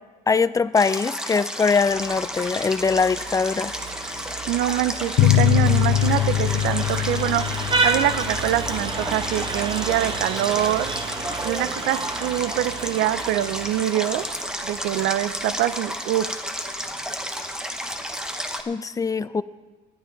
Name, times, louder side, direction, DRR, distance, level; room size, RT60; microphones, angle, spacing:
voice 1, 0.3-3.7 18.7-19.4, left 5 dB, 20° left, 15 dB, 0.4 m, -22 dB
Stream, 0.8-18.6, equal, 5° right, 1.1 m, -32 dB
Vehicle horn car horn honking, 1.8-18.6, right 4 dB, 30° right, 1.1 m, -32 dB
voice 2, 4.5-10.9 11.4-14.3 14.6-16.3, right 13 dB, 85° right, 15 dB, 0.6 m, -25 dB
sound 1, 5.2-10.3, left 12 dB, 70° left, 0.6 m, -23 dB
19.0 x 11.5 x 3.9 m, 1.3 s
cardioid pair, 110°, 17 cm